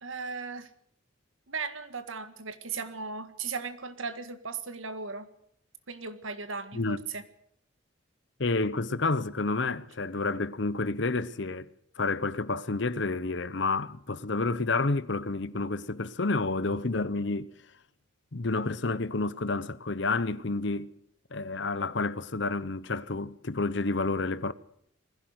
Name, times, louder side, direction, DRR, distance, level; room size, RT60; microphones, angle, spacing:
voice 1, 0.0-0.7 1.5-5.3 5.9-7.2, right 5 dB, 80° right, 1.8 m, -37 dB
voice 2, 8.4-11.7 12.0-17.5 18.3-20.9 21.3-24.5, left 3 dB, 60° left, 0.9 m, -29 dB
21.0 x 16.0 x 8.0 m
head